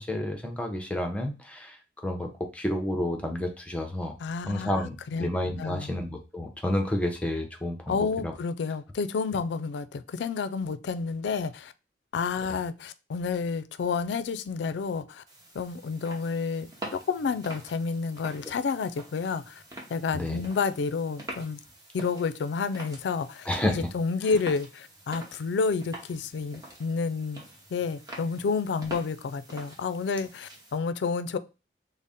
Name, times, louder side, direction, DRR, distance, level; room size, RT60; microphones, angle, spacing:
voice 1, 0.0-1.8 2.0-4.1 4.5-8.3 20.1-20.4 23.5-23.9, left 1 dB, 5° left, 0.6 m, -30 dB
voice 2, 4.2-4.7 5.1-5.3 5.6-5.9 7.9-11.7 12.1-15.2 15.5-19.6 19.9-21.6 21.9-23.5 23.7-27.4 27.7-31.4, left 5 dB, 75° left, 0.3 m, -30 dB
sound 1, 15.3-30.8, right 1 dB, 20° right, 0.8 m, -46 dB
4.0 x 2.1 x 3.5 m
head